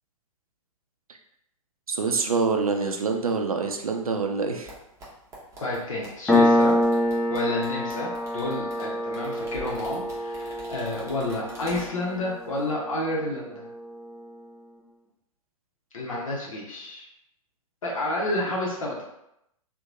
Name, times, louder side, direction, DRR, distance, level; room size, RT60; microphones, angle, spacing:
voice 1, 1.9-4.7, right 4 dB, 80° right, 4 dB, 0.4 m, -26 dB
sound 1, 4.6-12.2 12.5-12.7, right 1 dB, 15° right, 0.7 m, -45 dB
voice 2, 5.6-6.8 7.3-13.7 15.9-17.1 17.8-19.0, left 1 dB, 65° left, -3 dB, 0.7 m, -30 dB
Piano, 6.3-13.5, left 1 dB, 5° left, 0.4 m, -26 dB
2.8 x 2.1 x 2.5 m, 0.81 s
figure-of-eight pair, 110°, 18 cm